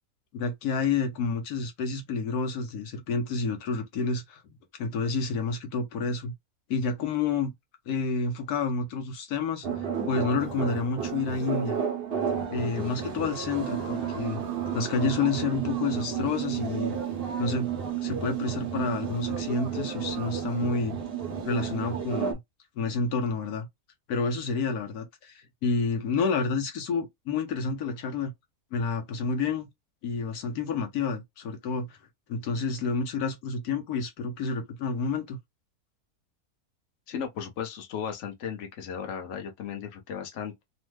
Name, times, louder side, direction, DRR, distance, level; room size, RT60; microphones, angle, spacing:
voice 1, 0.3-4.4 4.8-6.3 6.7-7.5 7.9-11.8 12.5-14.4 14.7-16.9 17.4-17.7 18.0-21.0 21.5-22.4 22.8-23.7 24.1-28.3 28.7-29.7 30.0-32.0 32.3-35.4, left 4 dB, 75° left, 1.2 m, -29 dB
sound 1, 9.6-22.3, right 8 dB, 55° right, 0.7 m, -32 dB
voice 2, 37.1-40.6, left 7 dB, 55° left, 1.0 m, -36 dB
3.1 x 2.1 x 3.1 m
omnidirectional pair, 1.7 m